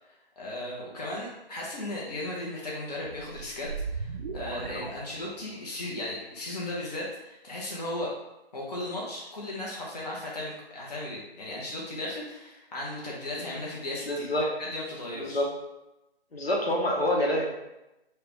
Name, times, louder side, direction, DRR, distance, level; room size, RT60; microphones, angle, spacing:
voice 1, 0.4-8.1 8.5-14.3 14.6-15.4, left 1 dB, 40° left, -4 dB, 0.8 m, -36 dB
sound 1, 3.0-5.7, right 4 dB, 55° right, 0.5 m, -37 dB
voice 2, 14.1-14.5 15.1-15.5 16.3-17.7, left 1 dB, 70° left, -1 dB, 1.0 m, -27 dB
4.9 x 2.2 x 3.0 m, 0.96 s
figure-of-eight pair, 145°, 31 cm